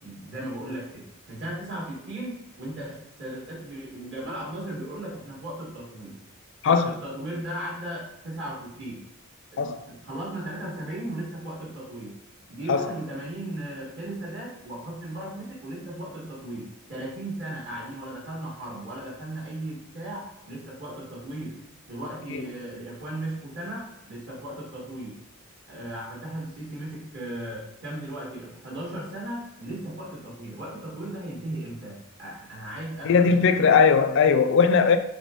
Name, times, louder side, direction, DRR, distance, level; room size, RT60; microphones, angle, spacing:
voice 1, 0.0-6.2 6.6-9.0 9.5-12.2 12.5-21.6 21.9-25.2 25.7-33.5, right 1 dB, 55° right, 1.4 m, -36 dB
voice 2, 33.0-35.0, left 5 dB, 55° left, 0.4 m, -19 dB
4.2 x 3.3 x 3.6 m
head